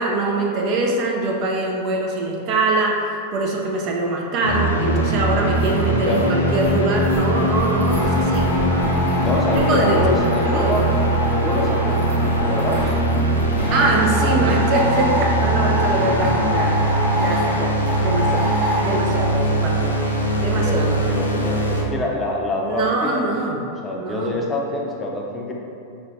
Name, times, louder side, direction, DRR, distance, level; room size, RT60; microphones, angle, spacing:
voice 1, 0.0-8.5 9.5-10.8 13.7-18.5 18.8-19.9 20.4-20.9 22.6-23.6 23.9-24.4, right 2 dB, 40° right, 0 dB, 0.4 m, -23 dB
sound 1, 4.4-21.8, right 1 dB, 85° left, 0.4 m, -21 dB
sound 2, 4.9-5.0 5.3-13.8, right 1 dB, 70° right, 1.2 m, -33 dB
sound 3, 7.9-13.0 13.6-19.0, left 1 dB, 15° right, 1.0 m, -26 dB
voice 2, 9.2-10.8 11.2-12.9 14.2-14.7 20.5-23.3 23.8-25.5, left 1 dB, 15° left, -2 dB, 0.5 m, -26 dB
5.0 x 2.2 x 2.6 m, 2.5 s
figure-of-eight pair, 90°, 0 cm